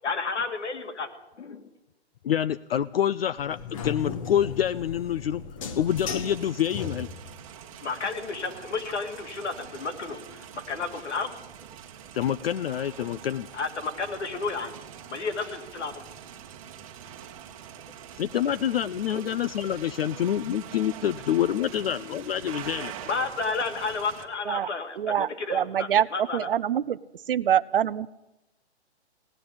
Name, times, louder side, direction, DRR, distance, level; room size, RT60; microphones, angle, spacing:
voice 1, 0.0-1.1 1.4-1.7 7.8-11.3 13.5-14.8 15.1-16.1 19.1-19.2 23.0-26.5, left 4 dB, 85° left, 5 dB, 2.4 m, -32 dB
voice 2, 2.2-5.4 5.8-7.1 12.1-13.5 18.2-22.9, left 10 dB, 60° left, 16 dB, 0.4 m, -27 dB
sound 1, 3.4-7.5, left 6 dB, 30° left, 1.0 m, -36 dB
sound 2, 5.9-24.3, right 9 dB, 30° right, 1.2 m, -44 dB
voice 3, 25.0-27.0 27.3-28.1, right 9 dB, 55° right, 17 dB, 0.5 m, -25 dB
17.0 x 9.7 x 8.6 m, 0.96 s
hypercardioid pair, 170°, 34 cm